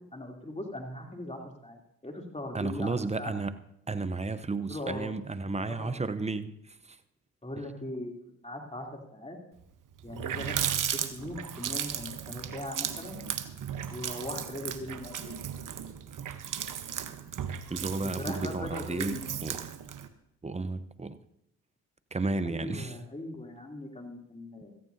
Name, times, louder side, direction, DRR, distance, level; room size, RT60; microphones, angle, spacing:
voice 1, 0.1-3.3 4.7-5.1 5.7-6.0 7.4-8.1 8.4-9.4 10.0-13.2 13.9-15.4 18.2-19.2 22.4-24.7, left 1 dB, 15° left, 1 dB, 3.2 m, -39 dB
voice 2, 2.5-3.6 3.9-7.0 7.6-7.7 17.7-19.6 20.4-21.2 22.1-22.9, right 3 dB, 15° right, 12 dB, 0.8 m, -33 dB
Water tap faucet, 9.6-9.7 10.0-20.1, right 9 dB, 55° right, 1.1 m, -36 dB
17.5 x 14.5 x 2.8 m, 0.78 s
supercardioid pair, 60°, 39 cm